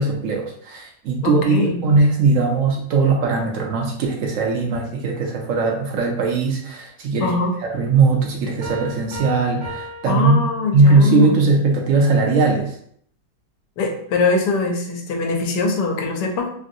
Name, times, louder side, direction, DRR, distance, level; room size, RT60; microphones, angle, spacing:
voice 1, 0.0-7.3 7.6-10.4 10.7-12.7, right 3 dB, 80° right, 1 dB, 0.7 m, -19 dB
voice 2, 1.2-1.8 7.2-7.5 10.1-11.4 13.8-16.5, left 4 dB, 75° left, 2 dB, 1.3 m, -22 dB
sound 1, 8.6-11.1, right 1 dB, 40° right, 1.6 m, -36 dB
3.1 x 2.6 x 2.5 m, 0.63 s
omnidirectional pair, 1.9 m